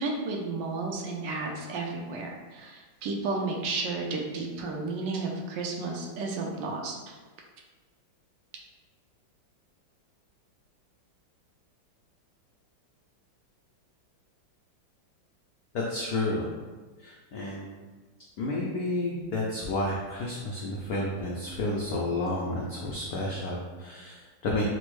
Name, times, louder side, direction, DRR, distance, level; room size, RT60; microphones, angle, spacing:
voice 1, 0.0-7.2, right 3 dB, 75° right, 0 dB, 1.2 m, -32 dB
voice 2, 15.7-16.5 17.0-17.8 18.4-24.7, left 1 dB, 90° left, -4 dB, 0.8 m, -31 dB
4.3 x 2.0 x 3.0 m, 1.3 s
omnidirectional pair, 2.2 m